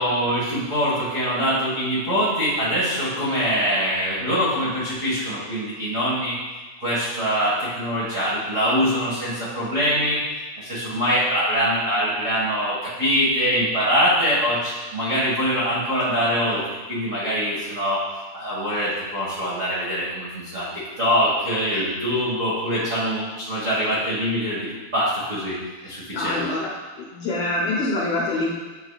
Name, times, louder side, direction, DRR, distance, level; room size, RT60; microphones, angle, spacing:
voice 1, 0.0-6.4 6.8-10.2 10.6-16.6 16.9-18.0 18.3-20.7 21.0-25.6 25.8-26.4, equal, 65° right, -10 dB, 0.7 m, -23 dB
voice 2, 26.1-26.7 27.0-28.5, left 2 dB, 70° left, -5 dB, 1.8 m, -25 dB
9.3 x 4.9 x 2.4 m, 1.3 s
omnidirectional pair, 4.2 m